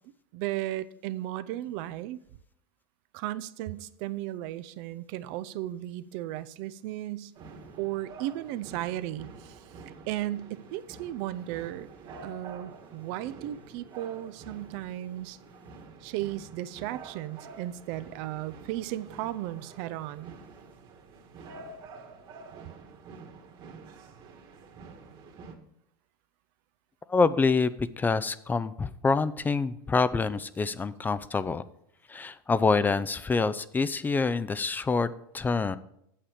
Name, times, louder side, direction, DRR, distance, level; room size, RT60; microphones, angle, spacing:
voice 1, 0.3-2.2 3.1-7.3 7.8-9.7 10.1-11.9 12.2-15.4 16.0-20.3, right 14 dB, 60° right, 14 dB, 0.5 m, -35 dB
sound 1, 7.4-25.6, right 4 dB, 45° right, 1.7 m, -48 dB
voice 2, 27.1-31.6 32.1-35.8, left 4 dB, 15° left, 15 dB, 0.4 m, -26 dB
8.6 x 7.5 x 5.0 m, 0.73 s
supercardioid pair, 110°, 11 cm